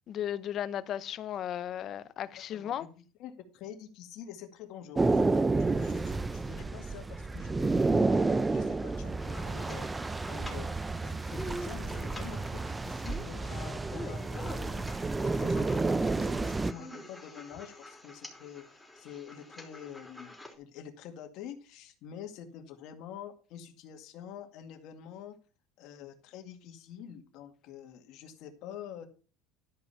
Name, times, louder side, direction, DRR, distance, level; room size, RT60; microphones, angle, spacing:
voice 1, 0.1-2.8, left 10 dB, 45° left, 0.8 m, -35 dB
voice 2, 2.5-2.9 3.2-10.7 11.0-25.4 25.8-29.1, left 9 dB, 65° left, 2.1 m, -47 dB
sound 1, 5.0-16.7, right 3 dB, 15° right, 0.6 m, -30 dB
sound 2, 9.2-20.5, equal, 5° left, 3.4 m, -47 dB
12.5 x 5.4 x 5.6 m
supercardioid pair, 115°, 0 cm